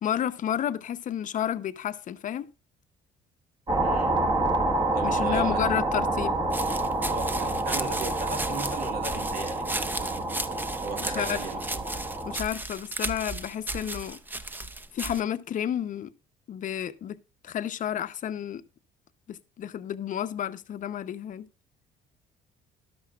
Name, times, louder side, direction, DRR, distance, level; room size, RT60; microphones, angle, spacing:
voice 1, 0.0-2.5 5.0-6.4 11.0-11.4 12.3-14.2 14.9-16.1 16.5-17.2 17.4-18.6 19.3-21.5, left 10 dB, 50° left, 0.7 m, -31 dB
sound 1, 3.7-12.4, right 2 dB, 25° right, 1.4 m, -28 dB
voice 2, 3.8-4.2 4.9-5.8 7.1-11.8, right 3 dB, 60° right, 1.7 m, -37 dB
sound 2, 6.5-15.2, right 2 dB, 10° right, 0.6 m, -35 dB
13.0 x 12.0 x 2.3 m
cardioid pair, 110°, 17 cm